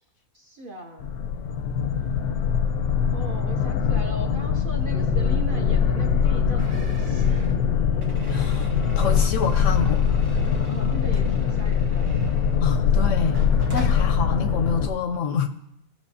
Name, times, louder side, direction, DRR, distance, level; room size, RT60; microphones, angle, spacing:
voice 1, 0.3-1.1 3.1-7.6 10.7-12.2, right 1 dB, 45° right, 2 dB, 0.7 m, -38 dB
sound 1, 1.0-14.9, left 7 dB, 85° left, 1.1 m, -22 dB
sound 2, 4.9-12.4, right 1 dB, 5° right, 0.7 m, -44 dB
sound 3, 6.6-12.8 13.3-14.1, right 2 dB, 85° right, 1.7 m, -46 dB
voice 2, 8.3-10.2 12.6-13.4 13.7-15.5, left 6 dB, 70° left, 8 dB, 0.8 m, -28 dB
16.5 x 5.7 x 2.7 m, 0.78 s
omnidirectional pair, 1.6 m